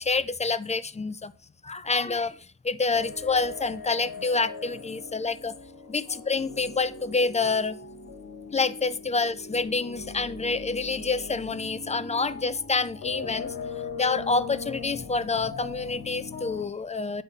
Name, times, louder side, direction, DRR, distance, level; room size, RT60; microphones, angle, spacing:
voice 1, 0.0-1.3 1.6-5.5 5.9-7.8 8.5-13.5 14.0-17.2, left 4 dB, 20° left, 14 dB, 0.4 m, -27 dB
sound 1, 2.9-16.7, left 5 dB, 55° left, 1.5 m, -40 dB
9.7 x 4.1 x 5.4 m, 0.39 s
wide cardioid pair, 125°, 40 cm